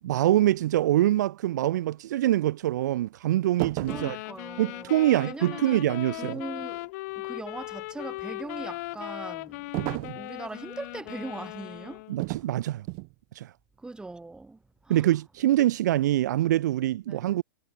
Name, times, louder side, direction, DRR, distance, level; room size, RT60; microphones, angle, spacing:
voice 1, 0.0-4.2 4.6-6.4 12.1-12.9 13.3-13.5 14.9-17.4, right 14 dB, 60° right, 0.8 m, -24 dB
sound 1, 3.6-4.2 9.7-10.3 12.2-12.5 12.9-13.1, right 40 dB or more, 40° right, 1.1 m, -32 dB
sound 2, 3.8-12.2, left 22 dB, 50° left, 1.4 m, -38 dB
voice 2, 3.9-5.0 5.3-5.8 6.1-6.9 7.2-9.7 10.1-12.0 12.3-12.5 13.8-15.1 17.1-17.3, right 3 dB, 5° right, 5.5 m, -40 dB
figure-of-eight pair, 105°, 11 cm